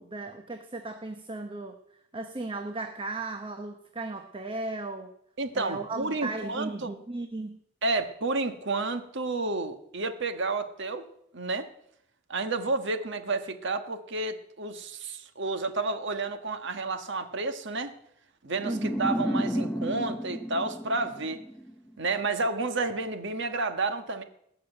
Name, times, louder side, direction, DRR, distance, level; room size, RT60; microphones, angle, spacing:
voice 1, 0.0-1.8 2.1-5.1 5.5-7.6 18.6-19.1, right 2 dB, 25° right, 7 dB, 0.9 m, -36 dB
voice 2, 5.4-7.0 7.8-11.0 11.3-11.7 12.3-17.9 18.4-21.4 22.0-24.2, right 3 dB, 60° right, 8 dB, 1.4 m, -31 dB
sound 1, 18.6-21.7, equal, 10° left, 0.8 m, -32 dB
19.5 x 7.0 x 9.0 m, 0.76 s
head